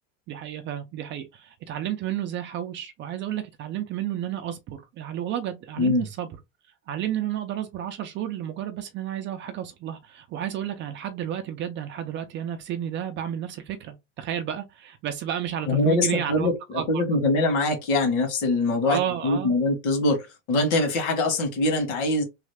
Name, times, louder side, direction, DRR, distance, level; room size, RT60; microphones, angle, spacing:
voice 1, 0.3-6.3 6.9-17.0 18.8-19.5, right 10 dB, 30° right, 0.4 m, -31 dB
voice 2, 15.7-22.2, left 2 dB, 70° left, 1.7 m, -23 dB
3.2 x 2.4 x 3.3 m
supercardioid pair, 145°, 38 cm